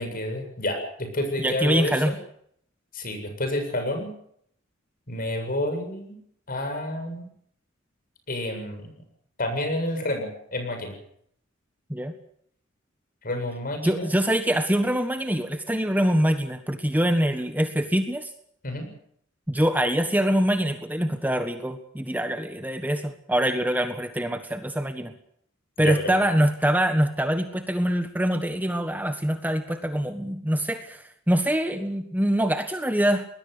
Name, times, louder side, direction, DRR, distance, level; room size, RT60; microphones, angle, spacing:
voice 1, 0.0-2.2 2.9-4.1 5.1-6.2 6.5-7.3 8.3-8.9 9.4-10.9 13.2-14.1 18.6-18.9 25.8-26.1, left 1 dB, 45° left, 6 dB, 7.7 m, -29 dB
voice 2, 1.4-2.1 11.9-12.1 13.8-18.3 19.5-25.1 25.8-33.3, equal, 10° right, 7 dB, 1.5 m, -24 dB
23.0 x 20.5 x 6.8 m, 0.68 s
head